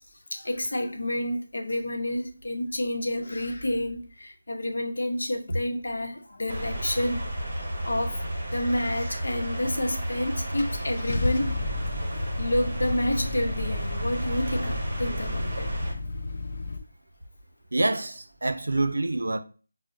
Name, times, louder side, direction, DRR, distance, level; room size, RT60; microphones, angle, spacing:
voice 1, 0.3-7.3 7.8-8.2 8.5-11.5 12.4-15.7, left 1 dB, 70° left, 0.8 m, -29 dB
sound 1, 6.5-15.9, right 1 dB, 20° right, 0.8 m, -32 dB
Car / Engine starting, 9.9-10.0 10.6-16.8, left 2 dB, 30° left, 0.4 m, -33 dB
voice 2, 17.7-19.4, right 2 dB, 80° right, 0.5 m, -26 dB
5.8 x 2.1 x 2.5 m
figure-of-eight pair, 180°, 0 cm